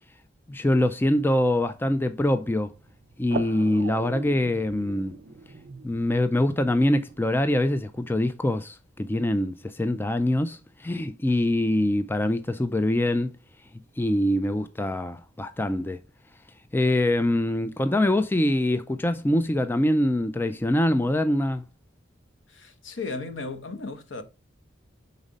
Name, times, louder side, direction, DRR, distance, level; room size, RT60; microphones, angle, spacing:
voice 1, 0.5-2.7 3.2-5.2 5.8-13.3 14.0-16.0 16.7-21.6, left 1 dB, 10° left, 0.3 m, -24 dB
sound 1, 1.1-8.1, right 4 dB, 55° right, 0.5 m, -41 dB
voice 2, 22.5-24.2, left 3 dB, 70° left, 1.0 m, -35 dB
5.3 x 4.0 x 5.0 m
head